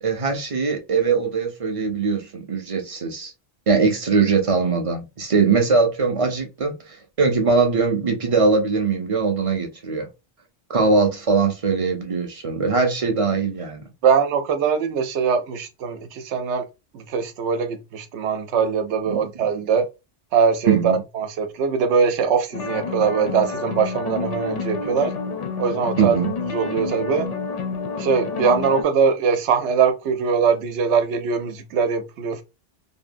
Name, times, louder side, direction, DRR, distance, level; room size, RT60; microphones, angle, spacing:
voice 1, 0.0-3.3 3.7-10.1 10.7-13.8 19.1-19.3 20.7-21.0 26.0-26.3, right 4 dB, 40° right, 0.5 m, -21 dB
voice 2, 14.0-16.7 16.9-19.9 20.3-25.1 25.6-26.2 26.5-27.3 28.0-32.4, right 6 dB, 90° right, 0.9 m, -22 dB
sound 1, 22.5-28.8, left 4 dB, 50° left, 0.5 m, -29 dB
2.8 x 2.1 x 2.5 m
omnidirectional pair, 1.1 m